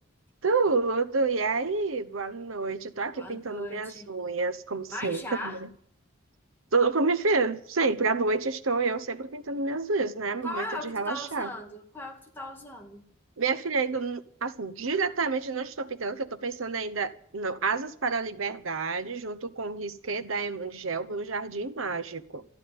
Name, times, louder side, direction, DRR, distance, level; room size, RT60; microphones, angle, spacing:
voice 1, 0.4-5.7 6.7-11.5 13.4-22.4, right 4 dB, 85° right, 1.0 m, -29 dB
voice 2, 3.2-4.1 4.9-5.6 10.4-13.0, left 1 dB, 10° left, 2.1 m, -38 dB
14.0 x 10.5 x 9.5 m
head